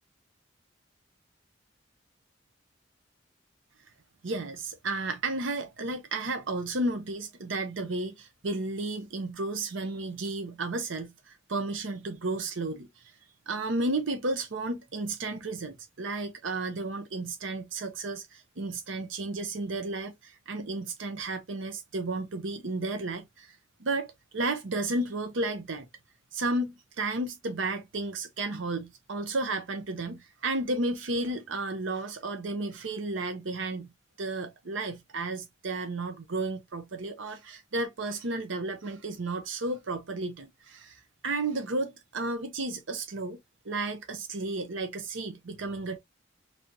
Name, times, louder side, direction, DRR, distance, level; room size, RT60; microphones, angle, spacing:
voice 1, 4.2-12.9 13.5-25.9 26.3-33.9 34.2-43.4 43.6-46.0, right 2 dB, 75° right, 0.7 m, -33 dB
3.9 x 3.4 x 2.7 m
head